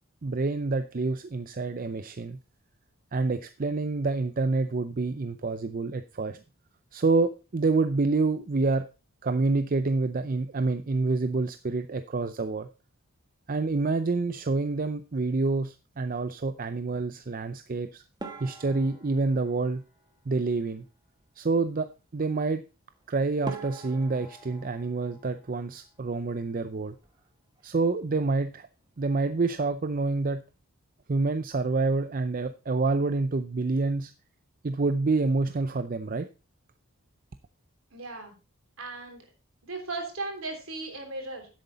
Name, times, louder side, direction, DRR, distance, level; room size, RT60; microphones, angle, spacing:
voice 1, 0.2-2.4 3.1-6.4 6.9-8.9 9.2-12.7 13.5-18.0 18.4-19.8 20.3-20.8 21.4-22.6 23.1-27.0 27.6-28.7 29.0-30.4 31.1-34.1 34.6-36.3, right 3 dB, 40° right, 10 dB, 0.5 m, -27 dB
sound 1, 18.2-20.7 22.9-23.0 23.4-26.2 26.5-27.3 27.6-27.8 28.1-28.2 28.8-29.1, right 3 dB, 20° right, 1.4 m, -45 dB
voice 2, 37.9-38.3 38.8-39.2 39.6-41.5, right 3 dB, 65° right, 4 dB, 3.3 m, -36 dB
10.5 x 8.0 x 4.1 m, 0.32 s
head